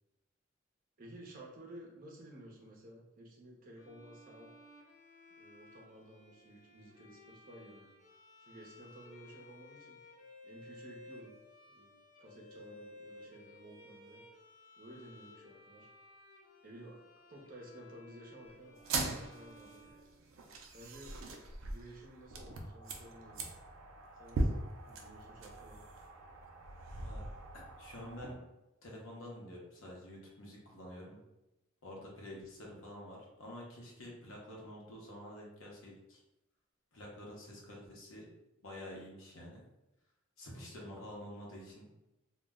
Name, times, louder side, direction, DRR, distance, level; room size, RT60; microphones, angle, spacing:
voice 1, 1.0-4.5 5.4-7.9 8.4-10.0 10.4-11.3 11.7-11.9 12.2-14.2 14.8-15.9 16.6-17.0 17.3-19.9 20.7-21.2 21.6-23.5 24.1-25.8 32.2-32.4, right 1 dB, 45° right, -2 dB, 0.6 m, -54 dB
Bowed string instrument, 3.8-20.7, left 2 dB, 35° left, 0.5 m, -57 dB
sound 1, 18.8-28.3, right 2 dB, 90° right, 0.4 m, -40 dB
voice 2, 27.5-28.4 28.8-31.2 31.8-36.2 36.9-38.3 38.6-39.6 40.4-41.9, left 1 dB, 90° left, -3 dB, 0.8 m, -48 dB
2.3 x 2.0 x 3.5 m, 0.97 s
head